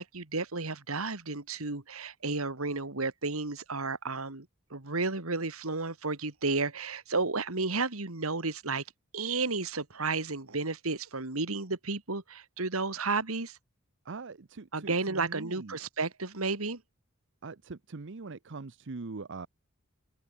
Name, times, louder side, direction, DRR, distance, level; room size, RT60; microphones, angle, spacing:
voice 1, 0.0-8.8 9.1-13.6 14.7-16.8, right 3 dB, 80° right, 2.5 m, -32 dB
voice 2, 14.0-15.8 17.4-19.5, right 3 dB, 60° right, 0.8 m, -42 dB
head